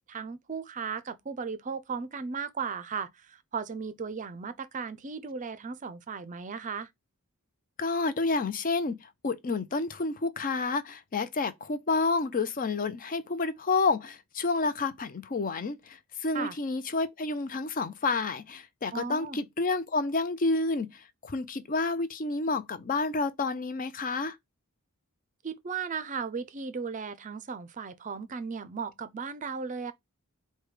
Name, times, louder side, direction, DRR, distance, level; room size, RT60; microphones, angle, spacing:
voice 1, 0.1-6.9 16.3-16.6 18.9-19.4 25.4-29.9, right 5 dB, 35° right, 0.5 m, -36 dB
voice 2, 7.8-9.0 9.2-20.9 21.2-24.4, left 3 dB, 40° left, 0.5 m, -29 dB
4.8 x 2.2 x 4.8 m
head